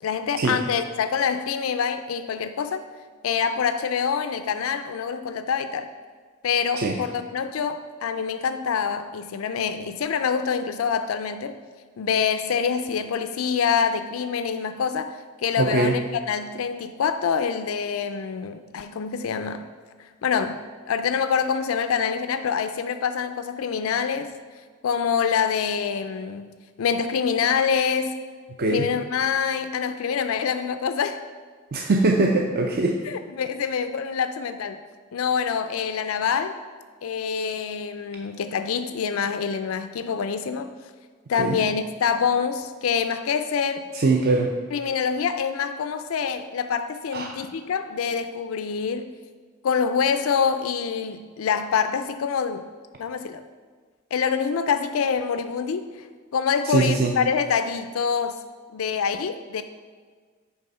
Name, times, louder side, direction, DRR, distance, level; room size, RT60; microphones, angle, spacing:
voice 1, 0.0-2.8 3.2-5.9 6.4-11.6 12.0-19.7 20.0-24.3 24.8-26.5 26.8-28.1 28.7-31.2 33.1-34.8 35.1-36.5 37.0-40.7 41.3-43.8 44.7-49.1 49.6-52.7 53.0-53.4 54.1-56.1 56.3-58.4 58.7-59.6, left 6 dB, 90° left, 9 dB, 0.4 m, -26 dB
voice 2, 15.6-15.9 28.6-28.9 31.7-33.0 41.4-41.6 43.9-44.5 47.1-47.3 56.7-57.1, right 3 dB, 50° right, 1 dB, 0.5 m, -21 dB
9.0 x 3.5 x 5.5 m, 1.5 s
head